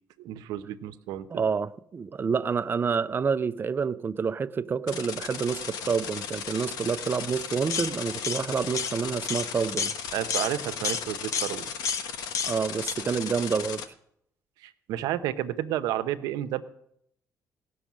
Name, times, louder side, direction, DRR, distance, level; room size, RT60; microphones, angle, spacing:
voice 1, 0.2-1.3 10.1-11.7 14.6-16.6, right 12 dB, 85° right, 0.7 m, -31 dB
voice 2, 1.3-9.9 12.5-13.8, right 6 dB, 35° right, 0.5 m, -28 dB
sound 1, 4.9-13.8, left 7 dB, 80° left, 1.0 m, -36 dB
sound 2, 7.7-7.9 8.2-8.4 8.8-8.9 9.3-9.5 9.8-10.0 10.3-10.5 10.8-11.0 11.3-11.5 11.9-12.0 12.3-12.6 12.9-13.0, left 6 dB, 55° left, 0.9 m, -29 dB
16.5 x 6.3 x 7.3 m
cardioid pair, 95°, 6 cm